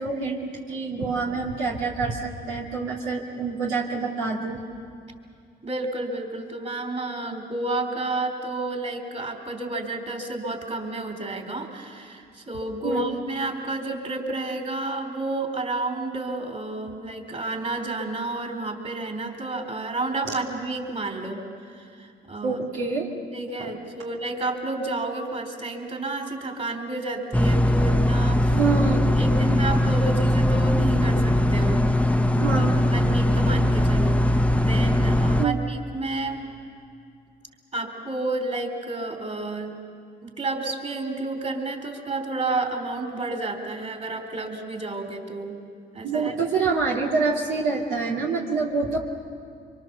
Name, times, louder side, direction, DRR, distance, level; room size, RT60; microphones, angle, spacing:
voice 1, 0.0-4.6 12.8-13.1 20.2-20.4 22.4-23.1 23.6-23.7 28.5-29.1 32.4-32.8 35.4-35.6 46.0-49.0, right 4 dB, 85° right, -2 dB, 2.4 m, -26 dB
voice 2, 5.6-21.4 21.7-22.6 23.3-28.6 29.2-31.8 32.5-36.5 37.7-39.8 40.2-45.6 45.9-46.3, right 2 dB, 35° right, 3 dB, 3.9 m, -31 dB
sound 1, 27.3-35.5, left 1 dB, 5° left, 0.9 m, -20 dB
25.0 x 24.0 x 7.0 m, 2.3 s
supercardioid pair, 60°, 20 cm